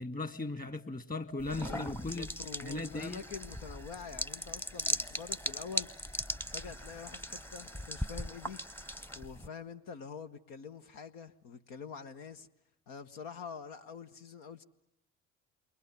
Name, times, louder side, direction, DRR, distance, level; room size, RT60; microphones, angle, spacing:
voice 1, 0.0-2.3 2.6-3.2, left 2 dB, 25° left, 2.2 m, -37 dB
sound 1, 1.4-9.5, equal, 5° left, 1.0 m, -39 dB
voice 2, 1.6-5.9 6.5-8.6 9.1-12.5 12.9-14.6, left 6 dB, 75° left, 1.3 m, -46 dB
28.5 x 23.5 x 8.1 m
hypercardioid pair, 60°, 34 cm